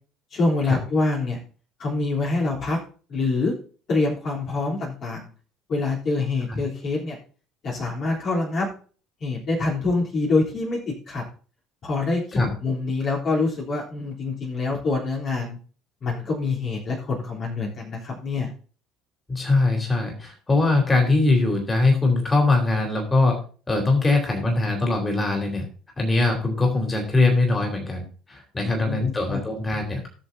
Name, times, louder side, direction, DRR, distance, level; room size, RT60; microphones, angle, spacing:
voice 1, 0.3-1.4 1.8-2.8 3.1-3.5 3.9-5.3 5.7-7.2 7.6-8.7 9.2-11.2 11.8-15.6 16.0-18.5 28.6-29.4, left 3 dB, 45° left, -4 dB, 3.5 m, -25 dB
voice 2, 19.3-23.4 23.7-25.7 26.0-30.1, left 2 dB, 20° left, 1 dB, 3.7 m, -22 dB
18.0 x 6.8 x 2.7 m, 0.40 s
figure-of-eight pair, 60°, 0 cm